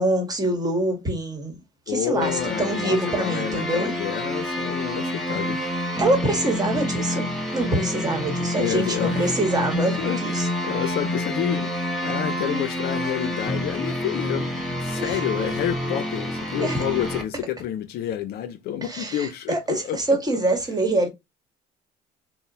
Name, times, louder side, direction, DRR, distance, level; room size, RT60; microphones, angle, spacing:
voice 1, 0.0-1.5 1.9-3.9 6.0-10.5 15.0-15.2 16.6-16.8 18.8-21.1, right 2 dB, 20° right, 1.1 m, -25 dB
voice 2, 1.9-5.7 8.5-9.4 9.8-20.2, left 11 dB, 60° left, 0.4 m, -29 dB
sound 1, 2.2-17.2, left 1 dB, ahead, 0.9 m, -28 dB
2.8 x 2.0 x 2.6 m
supercardioid pair, 75°, 18 cm